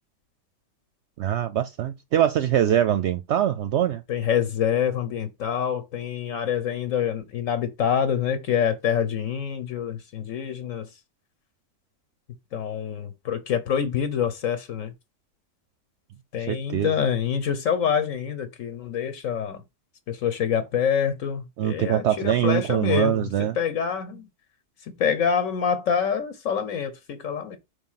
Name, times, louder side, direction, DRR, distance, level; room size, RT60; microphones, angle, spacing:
voice 1, 1.2-4.0 16.5-16.9 21.6-23.6, right 11 dB, 65° right, 0.8 m, -23 dB
voice 2, 4.1-10.9 12.5-14.9 16.3-19.6 20.1-23.3 23.6-24.2 25.0-27.6, left 8 dB, 75° left, 1.3 m, -26 dB
4.9 x 3.7 x 5.6 m
omnidirectional pair, 1.4 m